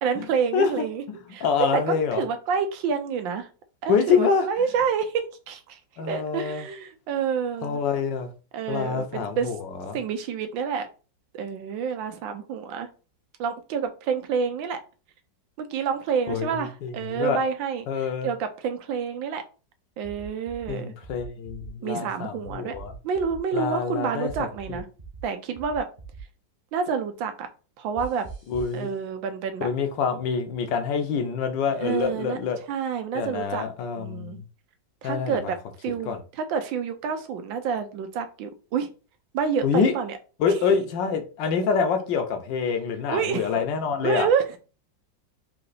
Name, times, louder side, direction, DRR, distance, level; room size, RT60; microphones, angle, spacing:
voice 1, 0.0-1.0 1.3-3.5 3.8-5.8 6.1-7.8 8.5-9.5 9.9-10.9 11.3-12.9 13.4-14.8 15.6-19.4 20.0-20.9 21.8-22.8 23.0-24.9 25.2-25.9 26.7-27.5 27.8-28.3 28.7-29.7 31.8-32.4 32.7-33.7 33.9-34.4 35.0-38.9 39.3-40.2 43.1-43.5 44.0-44.6, right 6 dB, 90° right, 1.5 m, -28 dB
voice 2, 0.5-2.2 3.9-4.5 6.0-6.7 7.6-8.3 8.7-9.6 9.9-10.0 16.3-17.4 17.9-18.3 20.7-22.9 23.5-24.3 24.7-24.8 28.5-28.9 29.6-32.6 33.1-34.4 35.0-35.4 36.0-36.2 39.6-39.9 40.4-44.3, left 6 dB, 75° left, 1.5 m, -26 dB
sound 1, 20.0-20.7 21.0-21.7 22.4-23.4 24.3-25.2 25.5-26.2 28.0-28.8, right 5 dB, 35° right, 0.9 m, -41 dB
4.3 x 2.8 x 4.0 m
omnidirectional pair, 2.0 m